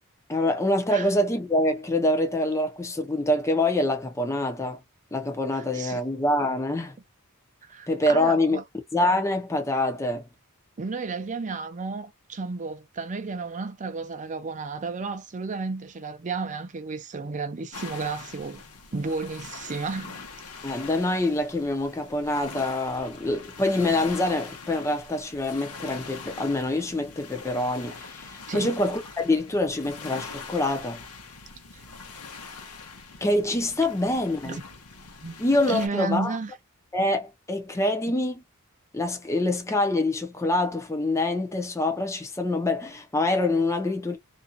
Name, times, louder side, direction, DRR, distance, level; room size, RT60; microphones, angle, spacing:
voice 1, 0.3-4.8 5.1-7.0 7.9-8.6 8.9-10.3 20.6-31.0 33.2-34.6 35.4-36.3 36.9-38.4 38.9-44.2, left 1 dB, 15° left, 0.5 m, -25 dB
voice 2, 5.5-6.0 7.6-8.6 10.8-18.6 18.9-20.3 28.5-28.7 31.7-31.8 34.4-34.6 35.2-35.4 35.7-36.5, right 4 dB, 35° right, 0.5 m, -32 dB
sound 1, 17.7-35.9, left 4 dB, 80° left, 0.8 m, -43 dB
2.6 x 2.3 x 2.6 m
head